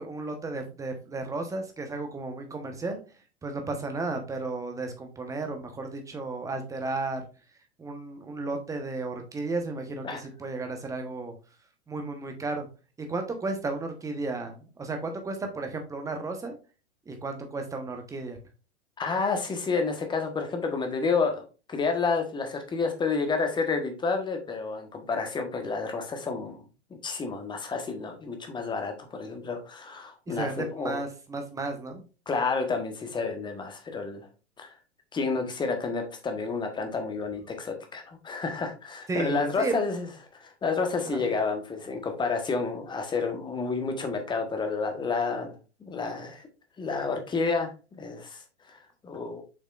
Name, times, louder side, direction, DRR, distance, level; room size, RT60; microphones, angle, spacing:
voice 1, 0.0-3.0 3.4-7.2 7.8-11.3 11.9-12.7 13.0-16.6 17.1-18.4 30.3-32.0 39.1-39.7 41.1-41.2, right 3 dB, 10° right, 5 dB, 1.1 m, -33 dB
voice 2, 19.0-26.6 27.0-31.0 32.3-34.3 34.6-34.8 35.1-40.1 40.4-45.5 45.8-46.4 46.8-48.4 48.7-49.4, left 4 dB, 15° left, 5 dB, 1.3 m, -30 dB
7.2 x 5.3 x 2.5 m, 0.32 s
figure-of-eight pair, 100°, 34 cm